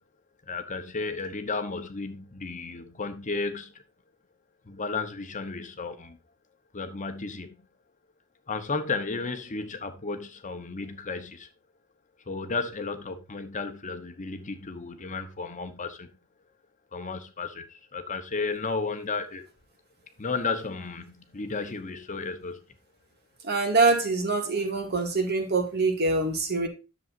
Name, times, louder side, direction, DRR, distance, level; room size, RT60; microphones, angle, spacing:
voice 1, 0.4-3.7 4.7-6.2 6.7-7.7 8.5-11.5 12.3-16.1 16.9-19.4 20.2-22.6, left 4 dB, 35° left, 0.9 m, -33 dB
voice 2, 23.4-26.7, right 3 dB, 50° right, 2.2 m, -24 dB
10.5 x 7.1 x 2.6 m
head